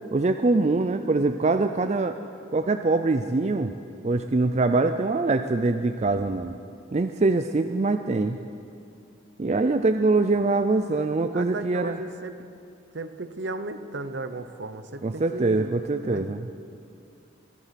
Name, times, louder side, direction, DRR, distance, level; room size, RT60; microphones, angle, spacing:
voice 1, 0.1-2.2 2.5-3.7 4.0-6.5 6.9-8.4 9.4-12.0 15.0-16.4, right 3 dB, 35° right, 8 dB, 0.4 m, -23 dB
voice 2, 11.3-12.5 12.9-16.3, right 2 dB, 60° right, 11 dB, 0.8 m, -35 dB
22.0 x 11.0 x 5.9 m, 2.4 s
head